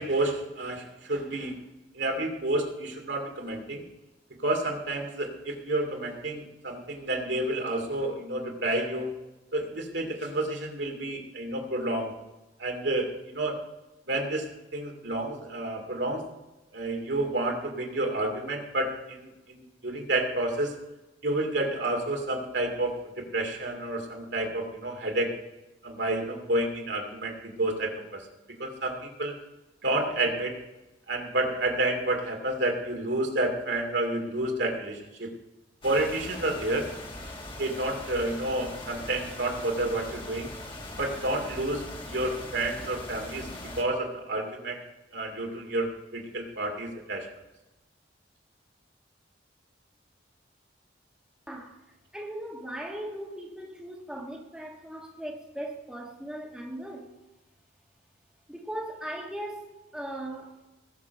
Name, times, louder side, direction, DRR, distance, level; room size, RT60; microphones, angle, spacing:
voice 1, 0.0-1.6 1.9-3.8 4.4-9.1 9.5-12.1 12.6-13.6 14.1-16.2 16.7-20.7 21.2-25.3 25.8-28.2 28.6-29.3 29.8-30.6 31.1-35.3 35.8-36.9 37.6-40.5 41.0-43.5 43.8-44.8 45.1-47.3, right 1 dB, 75° right, 2.4 m, -30 dB
sound 1, 35.8-43.8, left 1 dB, 25° left, 1.7 m, -41 dB
voice 2, 51.5-51.8 52.1-57.1 58.5-60.7, right 1 dB, 5° right, 1.4 m, -38 dB
19.5 x 6.4 x 5.2 m
head